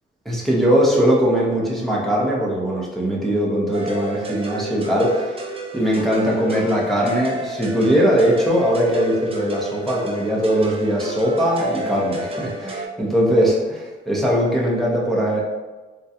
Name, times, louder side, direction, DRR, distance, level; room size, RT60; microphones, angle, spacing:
voice 1, 0.2-15.4, equal, ahead, -5 dB, 0.9 m, -20 dB
sound 1, 3.7-12.9, right 2 dB, 30° right, 0.6 m, -31 dB
3.6 x 2.3 x 2.8 m, 1.2 s
cardioid pair, 90°, 20 cm